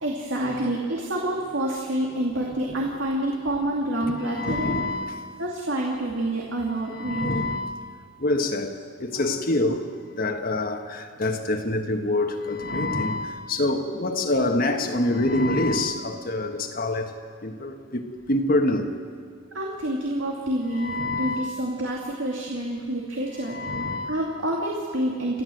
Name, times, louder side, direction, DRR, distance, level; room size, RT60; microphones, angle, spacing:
voice 1, 0.0-4.8 5.4-7.3 10.5-10.6 19.5-23.6 24.1-25.4, right 1 dB, 75° right, 2.4 m, -28 dB
voice 2, 4.0-5.3 6.9-7.7 8.2-9.8 10.1-17.1 17.4-18.0 18.3-18.9 20.7-21.6 23.4-24.1, left 2 dB, 45° left, 1.5 m, -26 dB
29.0 x 12.5 x 7.8 m
head